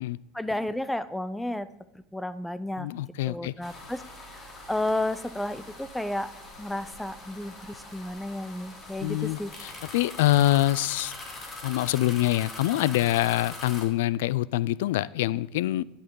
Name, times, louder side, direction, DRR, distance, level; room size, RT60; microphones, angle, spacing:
voice 1, 0.3-1.7 2.1-2.9 3.3-4.0 4.4-6.3 6.6-9.5, left 1 dB, 5° left, 15 dB, 0.5 m, -32 dB
voice 2, 2.8-3.5 9.0-11.1 11.6-15.8, left 15 dB, 85° left, 21 dB, 0.3 m, -25 dB
sound 1, 3.6-13.8, left 2 dB, 25° left, 2.2 m, -43 dB
10.5 x 8.5 x 3.8 m, 0.94 s
supercardioid pair, 125°, 0 cm